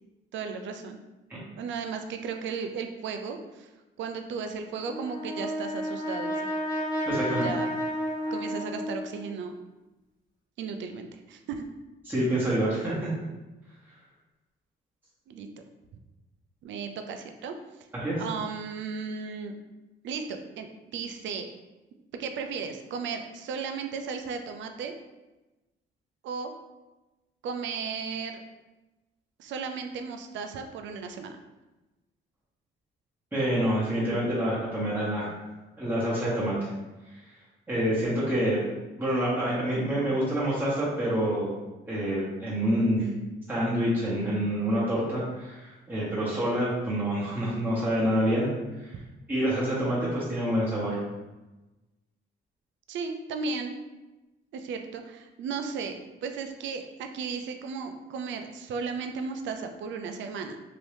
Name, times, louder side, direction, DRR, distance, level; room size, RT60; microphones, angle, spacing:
voice 1, 0.3-1.0 1.6-3.7 4.0-6.5 7.2-7.7 8.3-9.6 10.6-11.7 15.3-15.5 16.6-17.5 18.2-19.5 20.0-21.5 22.2-24.9 26.2-26.5 27.4-28.4 29.4-31.4 52.9-53.8 54.5-60.6, right 5 dB, 70° right, 6 dB, 0.4 m, -35 dB
Brass instrument, 4.9-9.3, equal, 20° left, 1.2 m, -31 dB
voice 2, 7.1-7.5 12.0-13.1 17.9-18.2 33.3-35.4 35.8-36.7 37.7-38.6 39.0-41.5 41.9-43.1 43.5-48.5 48.8-48.9 49.3-51.0, equal, 10° right, -9 dB, 1.1 m, -27 dB
2.9 x 2.6 x 3.3 m, 1.1 s
cardioid pair, 90°, 20 cm